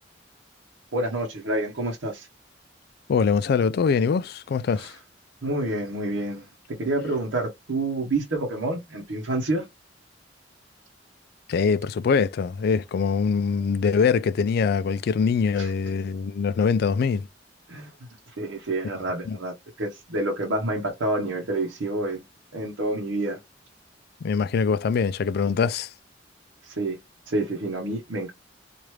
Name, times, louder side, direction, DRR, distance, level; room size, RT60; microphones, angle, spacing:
voice 1, 0.9-2.3 4.8-4.9 5.4-9.7 15.6-15.7 17.7-17.9 18.4-22.2 22.5-23.4 26.6-27.0 27.3-28.3, right 2 dB, 90° right, 0.8 m, -28 dB
voice 2, 3.1-5.0 11.5-17.3 19.2-19.4 24.2-25.9, left 5 dB, 55° left, 0.3 m, -23 dB
3.1 x 2.5 x 3.0 m
head